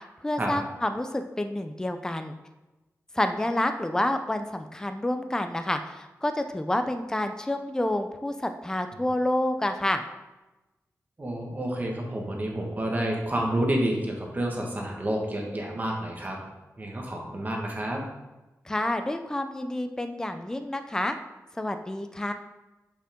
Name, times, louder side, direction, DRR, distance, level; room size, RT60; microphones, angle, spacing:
voice 1, 0.2-2.3 3.1-10.1 18.7-21.2 21.6-22.3, left 1 dB, 10° left, 7 dB, 0.5 m, -28 dB
voice 2, 11.2-16.4 16.8-18.0, right 1 dB, 30° right, 0 dB, 1.6 m, -29 dB
7.4 x 5.6 x 3.7 m, 1.1 s
wide cardioid pair, 115°, 6 cm